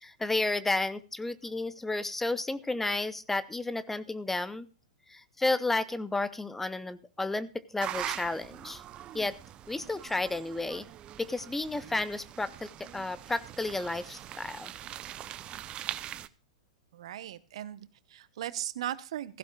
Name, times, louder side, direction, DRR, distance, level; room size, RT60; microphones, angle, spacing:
voice 1, 0.0-4.7 5.1-8.8 9.1-9.3 9.7-10.9 11.2-14.7, left 2 dB, 10° left, 15 dB, 0.7 m, -32 dB
sound 1, 7.8-16.3, right 12 dB, 30° right, 0.6 m, -42 dB
voice 2, 16.9-19.4, right 12 dB, 65° right, 15 dB, 0.9 m, -38 dB
16.0 x 15.5 x 2.4 m, 0.33 s
hypercardioid pair, 105°, 3 cm